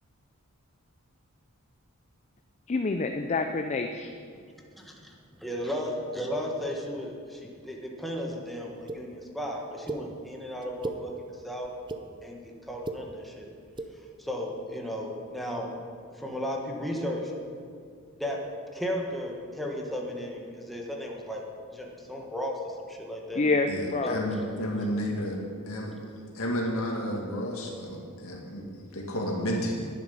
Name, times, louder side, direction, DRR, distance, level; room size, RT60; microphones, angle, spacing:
voice 1, 2.7-4.2 23.3-24.2, left 3 dB, 30° left, 6 dB, 0.5 m, -27 dB
voice 2, 5.4-11.7 12.2-13.5 14.2-15.7 16.1-17.3 18.1-18.4 18.7-21.4 21.7-23.4 24.0-24.1, equal, ahead, -1 dB, 1.3 m, -34 dB
sound 1, 8.9-9.0 9.9-10.0 10.6-11.0 11.6-12.0 12.7-13.0 13.7-13.9, right 3 dB, 20° right, 0.6 m, -35 dB
voice 3, 23.7-25.4 25.7-25.9 26.3-29.9, equal, 70° left, -1 dB, 2.1 m, -31 dB
10.5 x 10.5 x 5.5 m, 2.2 s
head